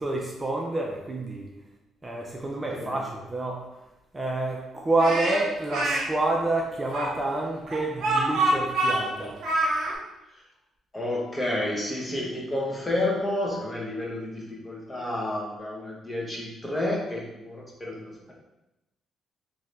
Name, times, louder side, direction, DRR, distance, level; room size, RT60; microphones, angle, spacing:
voice 1, 0.0-1.5 2.0-3.7 4.1-9.4, right 2 dB, 20° right, -1 dB, 0.5 m, -28 dB
Speech, 5.0-6.0 6.9-9.9, right 2 dB, 75° right, 0.9 m, -25 dB
voice 2, 10.9-18.3, left 1 dB, 20° left, -3 dB, 0.9 m, -30 dB
2.8 x 2.6 x 3.3 m, 0.95 s
cardioid pair, 90°, 0 cm